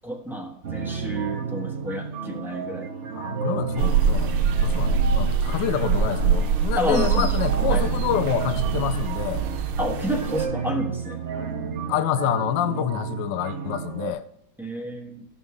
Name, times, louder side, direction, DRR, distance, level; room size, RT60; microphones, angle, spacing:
voice 1, 0.0-2.9 6.7-7.4 7.7-7.9 9.8-11.2 14.6-15.2, right 1 dB, ahead, 0.7 m, -30 dB
sound 1, 0.6-14.1, right 5 dB, 60° right, 0.7 m, -32 dB
voice 2, 3.1-9.4 11.9-14.2, left 11 dB, 75° left, 1.1 m, -27 dB
sound 2, 3.8-10.5, right 6 dB, 80° right, 1.5 m, -24 dB
14.0 x 5.7 x 3.1 m
omnidirectional pair, 2.3 m